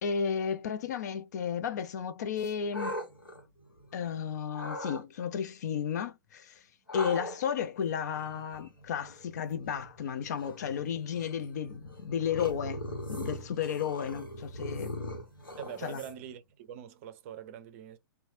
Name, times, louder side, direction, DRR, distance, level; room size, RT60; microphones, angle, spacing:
voice 1, 0.0-3.0 3.9-6.6 6.9-12.8 13.1-15.1 15.8-16.0, left 7 dB, 55° left, 0.5 m, -33 dB
sound 1, 2.4-4.1 4.5-5.0 6.9-16.4, left 1 dB, 85° left, 1.0 m, -41 dB
voice 2, 15.6-18.0, right 10 dB, 40° right, 0.5 m, -44 dB
3.1 x 2.2 x 2.5 m
figure-of-eight pair, 115°, 11 cm